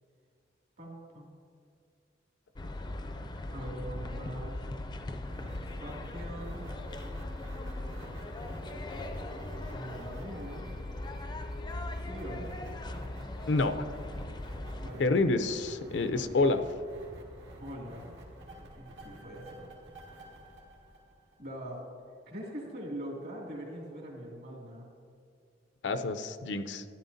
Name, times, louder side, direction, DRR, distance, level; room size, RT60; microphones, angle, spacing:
voice 1, 0.8-1.4 3.5-4.7 5.3-6.6 9.7-10.7 12.0-12.5 14.8-15.3 16.3-16.4 17.6-18.1 18.6-19.7 21.4-21.8 22.3-24.9, right 1 dB, 60° right, -2 dB, 2.3 m, -42 dB
sound 1, 2.6-14.9, left 1 dB, 25° left, 0.4 m, -39 dB
sound 2, 5.2-21.7, equal, 80° right, 1.9 m, -49 dB
voice 2, 15.0-16.6 25.8-26.8, left 3 dB, 75° left, 9 dB, 0.5 m, -28 dB
13.0 x 10.5 x 2.7 m, 2.3 s
head